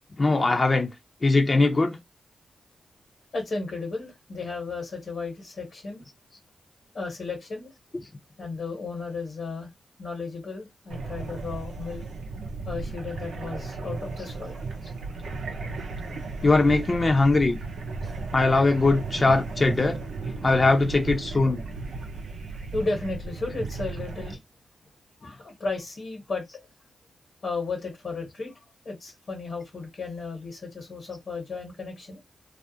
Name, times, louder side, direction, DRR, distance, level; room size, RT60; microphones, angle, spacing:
voice 1, 0.2-0.9 1.2-2.0 7.9-8.0 16.4-17.6 18.3-20.0 20.4-21.6, left 3 dB, 45° left, 0.7 m, -21 dB
voice 2, 3.3-6.0 6.9-7.7 8.4-9.7 10.0-12.0 12.6-14.6 18.0-18.2 20.0-20.1 22.7-24.4 25.2-26.6 27.4-28.5 28.8-32.2, left 3 dB, 70° left, 1.2 m, -34 dB
sound 1, 10.9-24.3, right 3 dB, 85° right, 0.6 m, -35 dB
2.4 x 2.0 x 2.7 m
supercardioid pair, 45°, 0 cm